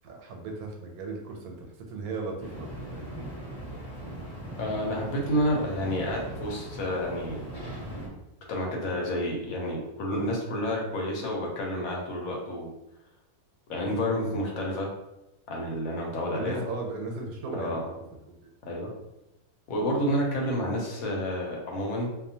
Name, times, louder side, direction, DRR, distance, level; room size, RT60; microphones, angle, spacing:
voice 1, 0.0-3.1 16.3-18.1, right 3 dB, 90° right, 2 dB, 1.1 m, -37 dB
sound 1, 2.4-8.1, right 1 dB, 20° left, 0.7 m, -39 dB
voice 2, 4.6-7.4 8.5-12.7 13.7-14.9 15.5-16.6 17.5-17.8 18.6-18.9 19.7-22.1, equal, 75° left, -1 dB, 1.1 m, -29 dB
2.7 x 2.1 x 2.7 m, 0.94 s
omnidirectional pair, 1.5 m